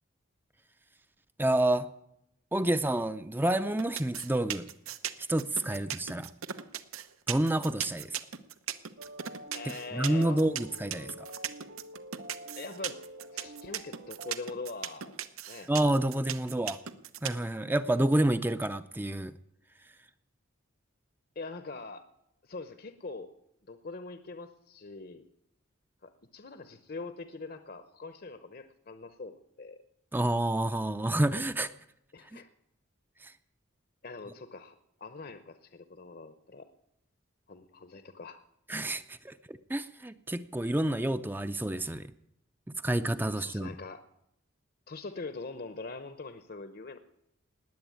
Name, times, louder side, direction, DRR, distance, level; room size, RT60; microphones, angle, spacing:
voice 1, 1.4-1.9 2.5-4.7 5.3-6.3 7.3-8.2 9.9-11.3 15.7-16.8 17.2-19.4 30.1-31.7 32.3-32.4 33.2-33.3 38.7-42.1 42.8-43.7, right 1 dB, 10° right, 11 dB, 0.5 m, -29 dB
sound 1, 3.8-17.4, right 10 dB, 85° right, 1.0 m, -37 dB
sound 2, 9.0-14.4, equal, 60° right, 0.9 m, -47 dB
voice 2, 9.5-10.4 12.6-13.0 13.3-15.1 15.5-15.7 21.4-22.0 22.4-23.3 23.7-25.2 26.0-29.8 32.1-32.5 34.0-36.7 37.5-38.4 43.3-44.0 44.9-47.0, left 3 dB, 45° left, 10 dB, 0.8 m, -43 dB
19.0 x 8.0 x 9.5 m, 0.79 s
head